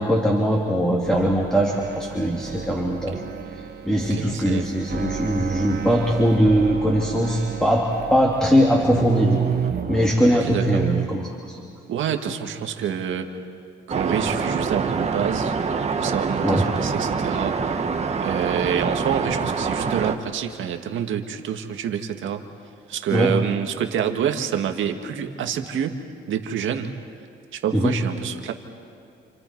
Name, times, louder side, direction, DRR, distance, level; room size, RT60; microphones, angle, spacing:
voice 1, 0.0-3.2 3.5-9.6 9.9-11.6 16.4-16.7 23.1-23.3 27.7-27.9, equal, 5° left, -2 dB, 3.2 m, -21 dB
sound 1, 1.1-11.1, right 8 dB, 55° right, 1.3 m, -31 dB
voice 2, 4.1-4.7 10.4-10.8 11.9-13.3 13.9-15.5 16.0-17.8 18.2-22.4 22.9-26.0 26.3-26.9 27.5-28.5, right 8 dB, 75° right, 5 dB, 1.9 m, -27 dB
sound 2, 13.9-20.2, right 5 dB, 35° right, 1.7 m, -25 dB
29.5 x 28.5 x 4.7 m, 2.5 s
cardioid pair, 90°, 20 cm